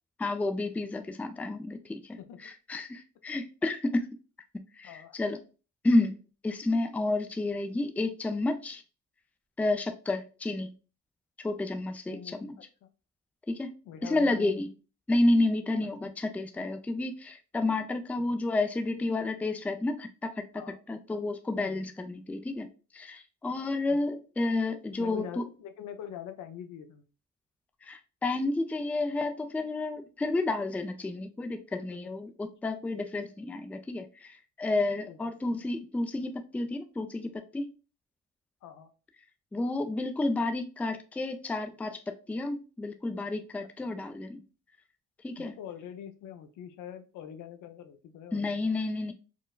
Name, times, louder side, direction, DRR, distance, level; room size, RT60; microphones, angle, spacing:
voice 1, 0.2-4.1 4.7-5.4 5.8-8.8 9.6-10.7 11.4-12.5 13.5-13.7 14.0-14.7 15.1-20.5 20.9-22.7 22.9-25.4 27.8-37.7 39.5-42.0 42.3-44.4 45.2-45.5 48.3-49.1, left 2 dB, 5° left, 7 dB, 0.3 m, -30 dB
voice 2, 4.8-5.2 12.1-12.6 13.9-14.6 15.8-16.1 18.2-18.4 20.5-20.8 21.6-21.9 23.9-24.0 25.0-27.0 32.0-32.1 35.1-35.2 38.6-38.9 43.8-43.9 45.4-48.6, left 9 dB, 80° left, 8 dB, 0.6 m, -44 dB
4.5 x 2.0 x 2.3 m, 0.34 s
cardioid pair, 90°, 30 cm